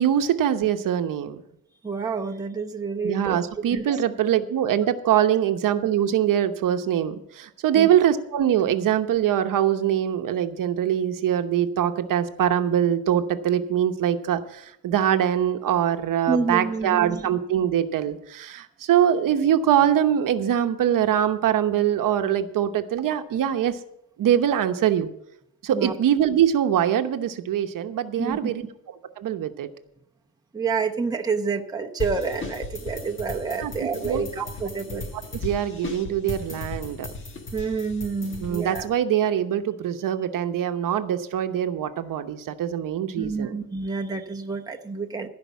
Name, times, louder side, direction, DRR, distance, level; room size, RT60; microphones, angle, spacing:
voice 1, 0.0-1.4 3.0-23.8 24.2-25.1 25.6-28.6 29.2-29.7 33.6-34.5 34.9-35.0 35.4-37.1 38.4-43.6, right 10 dB, 65° right, 8 dB, 1.0 m, -23 dB
voice 2, 1.8-3.4 3.7-3.8 7.7-7.9 16.3-17.3 25.7-25.9 28.2-28.5 30.5-35.1 37.5-38.9 43.2-45.3, right 4 dB, 10° right, 2 dB, 0.9 m, -28 dB
sound 1, 32.0-38.8, left 3 dB, 35° left, 1.5 m, -36 dB
15.5 x 5.2 x 8.2 m, 0.79 s
cardioid pair, 145°, 36 cm